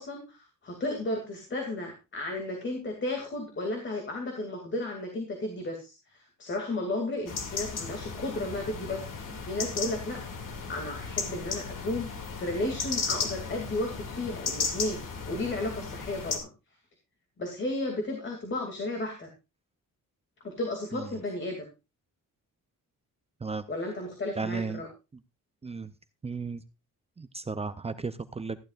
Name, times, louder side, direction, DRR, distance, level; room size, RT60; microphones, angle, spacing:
voice 1, 0.0-6.0 6.4-10.2 10.7-15.0 15.3-16.5 17.4-19.3 20.4-21.7 23.7-24.9, left 2 dB, 35° left, 3 dB, 2.5 m, -33 dB
sound 1, 7.3-16.4, left 5 dB, 75° left, 2.5 m, -35 dB
voice 2, 24.4-24.8 25.6-25.9 26.2-26.6 27.2-28.6, right 4 dB, 20° right, 11 dB, 0.5 m, -34 dB
14.5 x 11.5 x 2.4 m, 0.27 s
wide cardioid pair, 170°, 32 cm